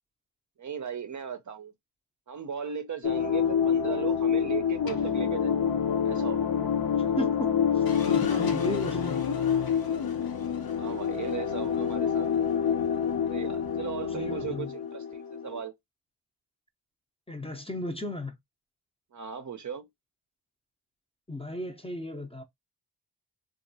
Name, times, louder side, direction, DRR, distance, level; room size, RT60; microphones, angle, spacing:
voice 1, 0.6-1.7 2.3-5.7 6.0-6.4 10.7-12.3 13.2-15.7 19.1-19.9, right 7 dB, 45° right, 0.5 m, -37 dB
sound 1, 3.0-15.6, left 7 dB, 55° left, 0.7 m, -27 dB
voice 2, 7.0-9.3 14.1-14.7 17.3-18.3 21.3-22.4, left 1 dB, 15° left, 0.6 m, -35 dB
2.8 x 2.4 x 2.6 m
cardioid pair, 75°, 44 cm